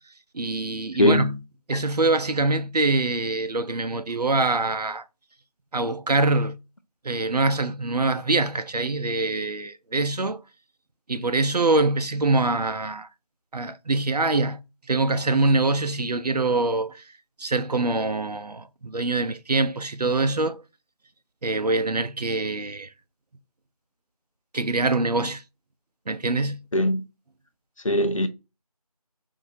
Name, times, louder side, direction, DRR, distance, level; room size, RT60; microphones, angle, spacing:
voice 1, 0.3-1.4 1.7-5.0 5.7-6.6 7.0-10.4 11.1-13.1 13.5-14.6 14.9-17.0 17.4-20.6 21.4-22.9 24.5-25.4 26.1-26.6, right 3 dB, 90° right, 0.6 m, -24 dB
voice 2, 1.0-1.3 26.7-27.0 27.8-28.3, left 1 dB, 55° left, 0.6 m, -20 dB
3.9 x 2.7 x 2.6 m
figure-of-eight pair, 180°, 20 cm